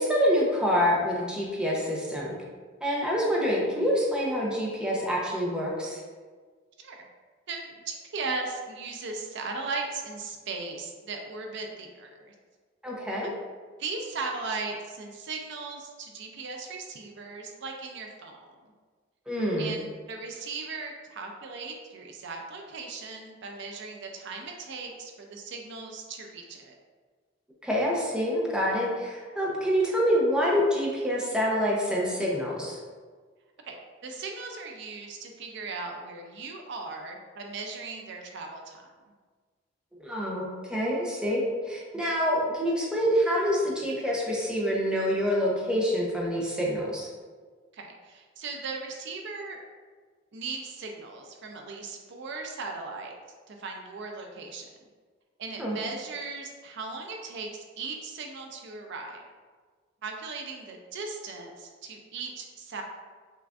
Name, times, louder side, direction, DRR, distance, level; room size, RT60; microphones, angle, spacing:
voice 1, 0.0-2.3 2.8-6.0 12.8-13.3 19.3-19.7 27.6-32.8 40.0-47.1 55.6-55.8, equal, 5° right, -4 dB, 0.6 m, -26 dB
voice 2, 7.5-12.3 13.2-13.3 13.8-18.4 19.6-26.8 33.6-38.9 47.7-49.6 50.3-53.1 53.5-54.7 55.4-59.3 60.0-62.8, right 4 dB, 65° right, 2 dB, 0.5 m, -38 dB
5.6 x 2.4 x 2.4 m, 1.5 s
head